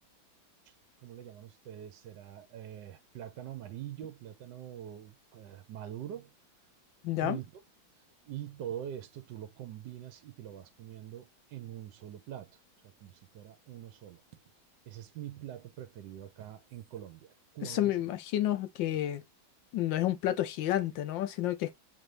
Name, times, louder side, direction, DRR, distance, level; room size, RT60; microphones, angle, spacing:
voice 1, 1.0-6.3 7.2-7.6 8.0-14.2 14.9-18.0, right 11 dB, 70° right, 1.2 m, -44 dB
voice 2, 7.0-7.4 17.6-19.2 19.7-21.7, left 13 dB, 75° left, 1.3 m, -30 dB
6.0 x 2.6 x 3.2 m
omnidirectional pair, 2.2 m